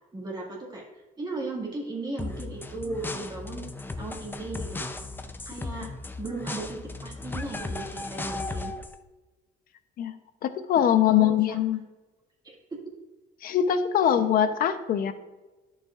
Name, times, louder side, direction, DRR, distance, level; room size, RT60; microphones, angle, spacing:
voice 1, 0.1-4.8 5.5-5.9 6.2-8.7 11.1-11.6 12.4-12.8 14.0-14.1, right 2 dB, 25° right, -3 dB, 1.9 m, -36 dB
sound 1, 2.2-9.0, left 3 dB, 10° left, 0.5 m, -36 dB
voice 2, 10.4-11.8 13.4-15.1, left 9 dB, 60° left, 10 dB, 0.7 m, -23 dB
11.0 x 6.6 x 2.4 m, 1.2 s
cardioid pair, 110°, 17 cm